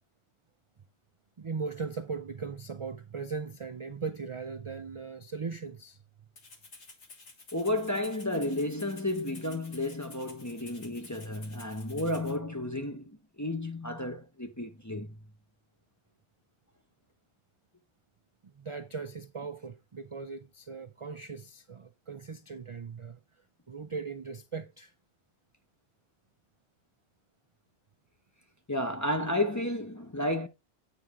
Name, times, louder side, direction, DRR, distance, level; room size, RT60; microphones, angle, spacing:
voice 1, 1.4-6.0 18.4-23.2 23.7-24.9, right 5 dB, 50° right, 0.4 m, -39 dB
Rattle (instrument), 6.4-12.4, left 3 dB, 80° left, 2.0 m, -52 dB
voice 2, 7.5-15.2 28.7-30.5, left 1 dB, 20° left, 0.6 m, -32 dB
9.1 x 3.8 x 4.6 m
omnidirectional pair, 1.2 m